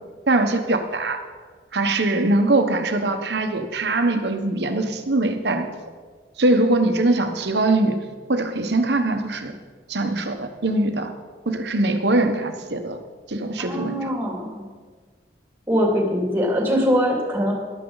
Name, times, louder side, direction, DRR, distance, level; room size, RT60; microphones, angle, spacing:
voice 1, 0.3-1.2 1.7-5.7 6.4-8.0 8.3-9.5 9.9-11.1 11.4-13.0 13.3-14.1, right 2 dB, 65° right, 6 dB, 1.1 m, -22 dB
voice 2, 13.6-14.7 15.7-17.5, equal, 10° right, -1 dB, 2.6 m, -22 dB
14.0 x 12.0 x 4.0 m, 1.5 s
head